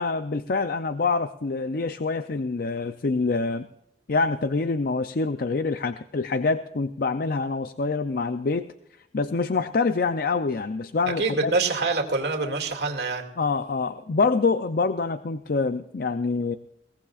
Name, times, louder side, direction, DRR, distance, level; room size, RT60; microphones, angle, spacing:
voice 1, 0.0-3.7 4.1-8.7 9.1-11.5 13.4-16.6, left 4 dB, 55° left, 10 dB, 0.5 m, -26 dB
voice 2, 11.2-13.3, right 3 dB, 70° right, 2 dB, 2.5 m, -25 dB
22.0 x 18.5 x 2.5 m, 0.81 s
head